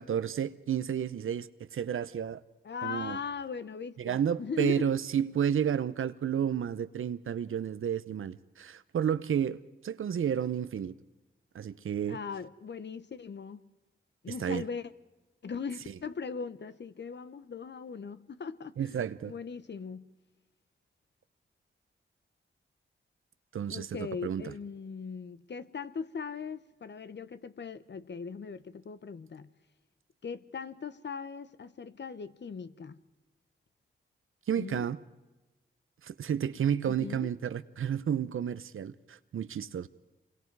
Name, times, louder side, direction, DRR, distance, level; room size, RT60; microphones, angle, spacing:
voice 1, 0.0-2.4 2.8-3.2 4.0-10.9 11.5-12.2 14.4-14.6 18.8-19.3 23.5-23.9 24.2-24.4 34.5-35.0 36.0-39.9, right 8 dB, 80° right, 0.8 m, -31 dB
voice 2, 2.6-4.9 12.1-13.7 14.2-14.9 15.4-19.0 19.3-20.1 23.7-29.5 30.2-33.0 34.5-34.9 36.9-37.3, left 5 dB, 60° left, 1.0 m, -39 dB
26.5 x 22.5 x 4.8 m
cardioid pair, 60°, 21 cm